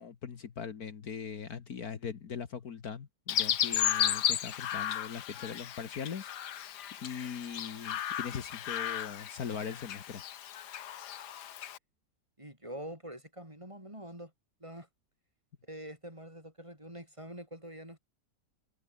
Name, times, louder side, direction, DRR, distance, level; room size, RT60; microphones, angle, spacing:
voice 1, 0.0-6.3 6.9-10.2, left 7 dB, 65° left, 1.9 m, -40 dB
Chirp tweet, 3.3-11.8, left 10 dB, 80° left, 1.6 m, -34 dB
voice 2, 12.4-14.3 14.6-14.9 15.6-18.0, right 1 dB, 15° right, 6.7 m, -45 dB
omnidirectional pair, 1.8 m